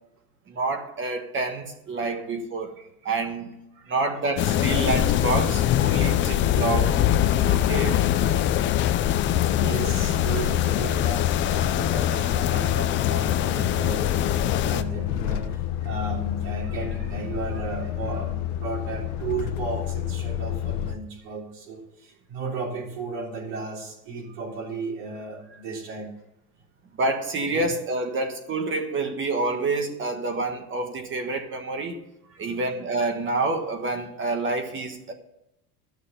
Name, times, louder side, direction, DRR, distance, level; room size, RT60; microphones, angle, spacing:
voice 1, 0.5-2.7 3.0-3.5 3.9-7.0 7.5-8.0 27.0-32.0 32.4-35.1, right 3 dB, 25° right, 5 dB, 1.4 m, -28 dB
sound 1, 4.4-14.8, left 11 dB, 25° left, 0.4 m, -23 dB
voice 2, 7.5-8.0 8.3-9.2 9.6-26.1 27.5-27.7 31.5-31.6 32.2-32.7, right 3 dB, 60° right, -3 dB, 3.6 m, -35 dB
Truck, 9.0-21.0, left 12 dB, 70° left, 1.1 m, -29 dB
12.0 x 6.5 x 7.0 m, 0.87 s
supercardioid pair, 140°, 45 cm